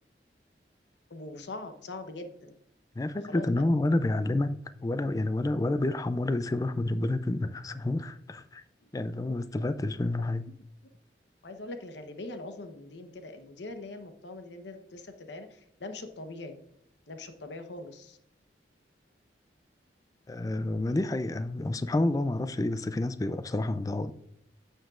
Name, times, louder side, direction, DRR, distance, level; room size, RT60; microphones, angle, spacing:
voice 1, 1.1-2.6 3.2-3.7 9.2-9.4 11.4-16.6 17.1-18.2 20.9-21.0, left 2 dB, 80° left, 0.9 m, -42 dB
voice 2, 3.0-8.6 8.9-10.4 20.3-24.1, left 2 dB, 20° left, 0.3 m, -29 dB
8.9 x 7.3 x 2.4 m
head